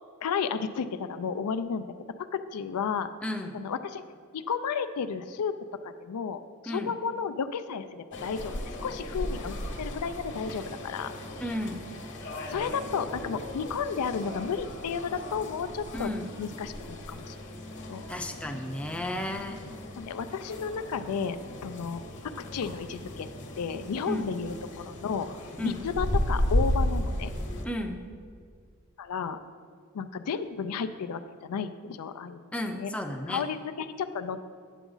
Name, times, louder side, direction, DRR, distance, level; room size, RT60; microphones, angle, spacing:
voice 1, 0.2-1.9 2.2-3.1 3.5-4.0 4.3-5.5 5.8-8.5 8.8-11.1 12.5-16.1 16.4-17.4 17.9-18.0 20.0-22.0 22.5-23.3 23.6-25.3 25.6-27.3 29.0-29.4 29.9-32.4 32.8-32.9 33.3-34.4, left 6 dB, 85° left, 11 dB, 0.4 m, -32 dB
voice 2, 3.2-3.5 6.7-6.9 11.4-11.9 15.9-16.3 18.1-19.6 24.0-24.3 25.6-25.8 27.6-28.0 32.5-33.4, left 1 dB, 5° left, 3 dB, 0.5 m, -33 dB
sound 1, 8.1-27.6, left 1 dB, 55° left, 1.0 m, -35 dB
9.1 x 7.1 x 3.9 m, 2.1 s
head